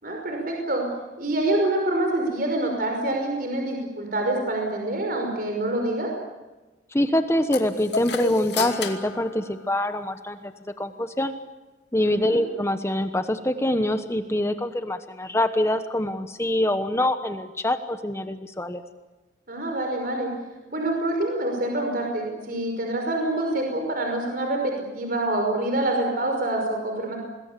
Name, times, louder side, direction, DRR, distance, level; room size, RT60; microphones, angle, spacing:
voice 1, 0.0-0.8 1.2-6.1 12.0-12.4 19.5-20.3 20.7-27.2, right 1 dB, 50° right, 2 dB, 5.6 m, -26 dB
voice 2, 6.9-11.3 11.9-18.8, left 1 dB, 15° left, 9 dB, 1.1 m, -25 dB
sound 1, 7.5-10.2, left 4 dB, 65° left, 2.4 m, -32 dB
26.0 x 21.0 x 8.4 m, 1.1 s
head